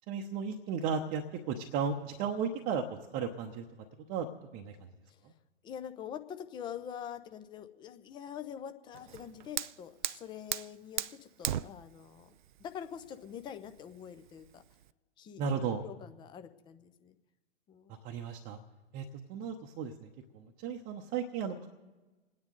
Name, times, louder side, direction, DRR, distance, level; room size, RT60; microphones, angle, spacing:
voice 1, 0.1-3.6 4.1-4.3 4.5-4.8 15.4-15.8 17.9-18.6 18.9-20.1 20.3-21.7, right 6 dB, 25° right, 2 dB, 0.9 m, -35 dB
voice 2, 5.6-12.3 12.6-14.6 15.2-17.2 17.7-17.9, left 9 dB, 15° left, 9 dB, 0.6 m, -45 dB
Fire, 8.9-14.9, right 11 dB, 45° right, 0.4 m, -39 dB
28.5 x 9.6 x 3.9 m, 1.2 s
figure-of-eight pair, 110°, 34 cm